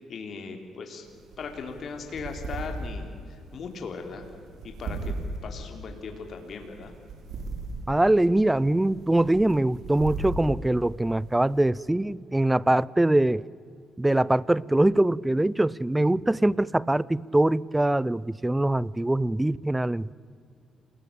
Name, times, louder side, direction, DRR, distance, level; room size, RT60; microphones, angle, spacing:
voice 1, 0.1-1.1 1.4-4.3 4.8-5.1 5.4-6.9, left 5 dB, 55° left, 4 dB, 3.5 m, -38 dB
sound 1, 1.0-11.6, right 2 dB, 70° right, 5.3 m, -38 dB
voice 2, 7.9-13.4 14.0-20.1, right 1 dB, 10° right, 23 dB, 0.6 m, -23 dB
28.5 x 20.0 x 8.7 m, 2.3 s
cardioid pair, 90°, 0 cm